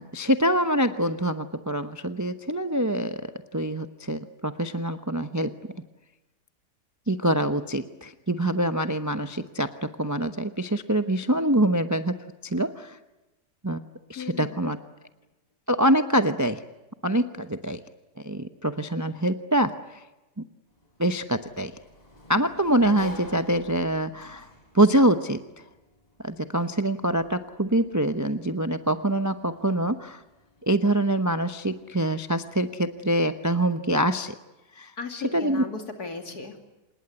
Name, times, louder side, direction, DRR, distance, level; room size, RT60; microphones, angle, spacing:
voice 1, 0.0-3.2 3.5-5.6 7.1-13.0 13.6-13.8 14.1-14.8 15.7-16.6 17.0-17.8 18.2-20.0 21.0-21.7 22.3-24.5 24.7-25.4 26.2-30.2 30.6-34.3 34.8-34.9 35.3-35.6, right 1 dB, 15° right, 9 dB, 0.6 m, -25 dB
voice 2, 14.2-14.6 35.0-36.6, left 4 dB, 60° left, 5 dB, 3.2 m, -36 dB
Sliding door, 20.7-33.3, equal, 20° left, 3.8 m, -51 dB
27.0 x 20.5 x 9.7 m, 1.0 s
omnidirectional pair, 1.8 m